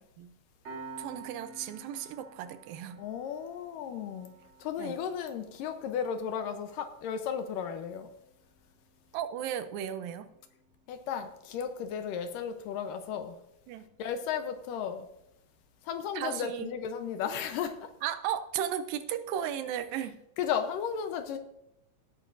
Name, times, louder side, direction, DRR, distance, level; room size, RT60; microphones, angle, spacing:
Piano, 0.6-11.7, right 3 dB, 35° right, 4.5 m, -52 dB
voice 1, 1.0-3.0 4.8-5.0 9.1-10.3 13.7-13.9 16.2-16.7 18.0-20.2, right 10 dB, 80° right, 11 dB, 2.3 m, -35 dB
voice 2, 3.0-4.3 4.6-8.1 10.9-13.4 14.0-15.1 15.8-17.9 20.4-21.4, left 8 dB, 75° left, 8 dB, 2.4 m, -34 dB
17.5 x 8.8 x 2.6 m, 0.80 s
omnidirectional pair, 4.1 m